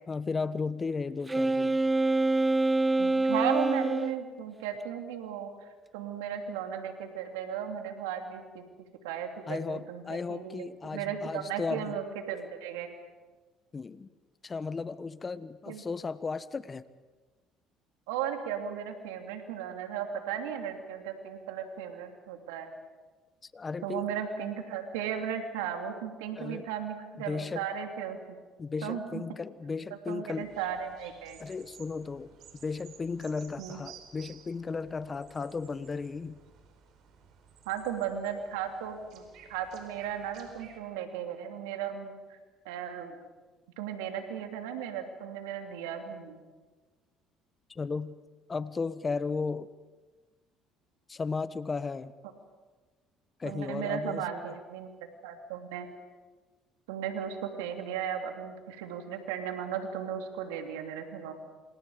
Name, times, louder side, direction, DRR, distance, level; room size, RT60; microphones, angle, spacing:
voice 1, 0.1-1.8 9.5-12.0 13.7-14.1 14.4-16.8 23.4-24.1 26.3-26.7 27.3-27.6 28.6-30.5 31.4-32.3 32.6-36.4 47.7-48.1 48.5-49.7 51.1-52.1 53.4-54.2, left 4 dB, 30° left, 15 dB, 1.2 m, -35 dB
Wind instrument woodwind instrument, 1.3-4.2, right 2 dB, 15° right, 0.9 m, -26 dB
voice 2, 3.0-8.6 9.0-12.9 15.7-15.8 18.1-22.7 23.8-28.4 28.8-29.2 30.1-31.4 33.6-33.8 37.6-42.4 42.6-43.2 43.8-46.4 53.4-54.9 55.2-55.9 56.9-61.3, right 8 dB, 85° right, 4 dB, 3.1 m, -36 dB
sound 1, 30.3-40.8, right 7 dB, 65° right, 4.7 m, -55 dB
28.0 x 27.5 x 5.1 m, 1.3 s
hypercardioid pair, 65°, 0 cm